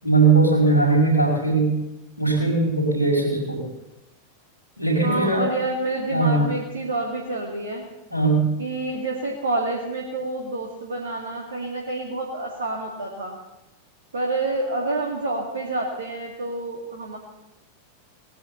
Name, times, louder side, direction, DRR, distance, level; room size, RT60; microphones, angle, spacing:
voice 1, 0.0-1.8 2.2-3.6 4.8-5.5 6.1-6.5 8.1-8.5, right 3 dB, 90° right, -1 dB, 5.4 m, -19 dB
voice 2, 5.0-7.8 8.6-13.4 14.1-17.2, right 2 dB, 70° right, 0 dB, 2.2 m, -28 dB
19.5 x 11.0 x 6.9 m, 0.96 s
figure-of-eight pair, 90°, 0 cm